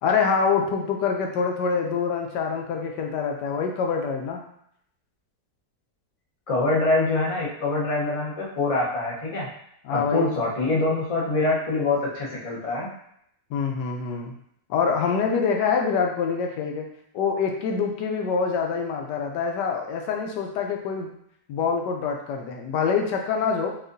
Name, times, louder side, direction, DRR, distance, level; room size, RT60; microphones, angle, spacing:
voice 1, 0.0-4.4 9.8-10.3 13.5-14.3 14.7-16.9 17.1-21.1 21.5-23.7, left 5 dB, 85° left, 2 dB, 1.2 m, -25 dB
voice 2, 6.5-9.5 9.9-12.9, left 2 dB, 30° left, -4 dB, 0.6 m, -24 dB
4.6 x 2.4 x 2.6 m, 0.71 s
omnidirectional pair, 1.8 m